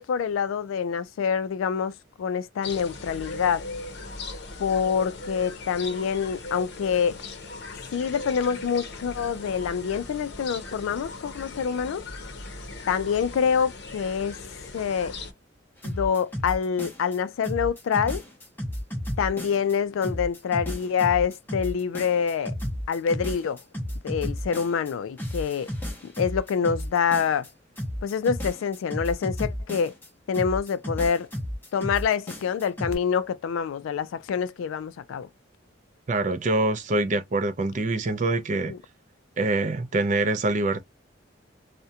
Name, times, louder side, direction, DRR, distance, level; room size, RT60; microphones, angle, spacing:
voice 1, 0.0-3.7 4.6-7.2 7.9-12.0 12.9-14.4 14.7-15.1 15.8-18.2 19.2-22.5 22.9-23.6 24.0-25.7 26.0-27.5 28.0-29.9 30.3-31.3 31.7-35.3 38.7-38.8, left 6 dB, 85° left, 0.3 m, -26 dB
sound 1, 2.6-15.3, left 2 dB, 55° left, 0.7 m, -38 dB
sound 2, 15.8-17.2 17.4-19.7 20.0-24.9 25.2-27.5 27.8-30.1 30.3-33.0, equal, 10° left, 0.6 m, -33 dB
voice 2, 36.1-38.7 39.4-40.8, right 2 dB, 40° right, 0.4 m, -25 dB
2.3 x 2.1 x 2.7 m
head